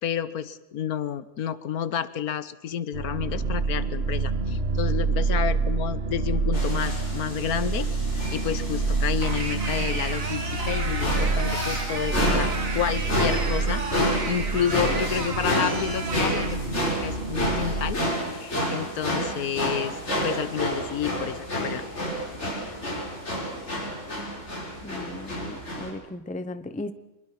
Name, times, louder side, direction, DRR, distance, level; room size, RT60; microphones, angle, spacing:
voice 1, 0.0-7.9 8.3-13.8 14.3-18.0 18.3-20.0 20.2-21.8, left 9 dB, 75° left, 16 dB, 1.4 m, -30 dB
sound 1, 2.9-17.9, right 3 dB, 40° right, 1.8 m, -28 dB
sound 2, 6.5-25.9, equal, 45° left, 5.7 m, -30 dB
sound 3, 9.2-16.5, right 3 dB, 55° right, 2.6 m, -34 dB
voice 2, 24.8-26.9, left 2 dB, 10° left, 12 dB, 0.6 m, -36 dB
23.5 x 21.5 x 5.9 m, 1.0 s
omnidirectional pair, 1.7 m